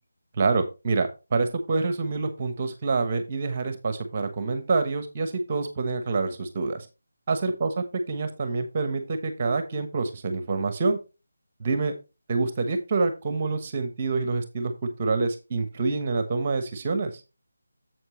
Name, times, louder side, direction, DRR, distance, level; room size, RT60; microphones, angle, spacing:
voice 1, 0.4-6.9 7.3-7.7 8.1-11.0 11.6-11.9 12.3-17.2, right 3 dB, 30° right, 9 dB, 1.1 m, -27 dB
7.8 x 7.7 x 3.1 m, 0.28 s
figure-of-eight pair, 160°, 0 cm